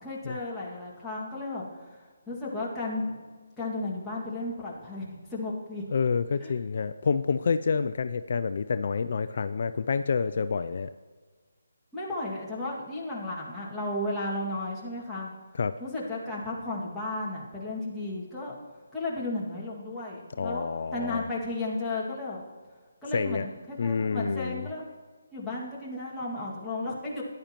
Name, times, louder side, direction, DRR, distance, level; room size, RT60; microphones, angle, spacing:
voice 1, 0.0-2.0 2.3-3.2 3.6-5.8 6.4-6.5 11.9-15.3 15.8-18.5 18.9-22.4 23.0-24.9 25.3-27.2, left 2 dB, 5° left, -7 dB, 2.0 m, -34 dB
voice 2, 5.9-10.9 15.6-15.8 20.4-21.3 23.1-23.4 23.8-24.7, left 5 dB, 55° left, 11 dB, 0.3 m, -28 dB
15.0 x 10.5 x 2.9 m, 1.5 s
hypercardioid pair, 160°, 0 cm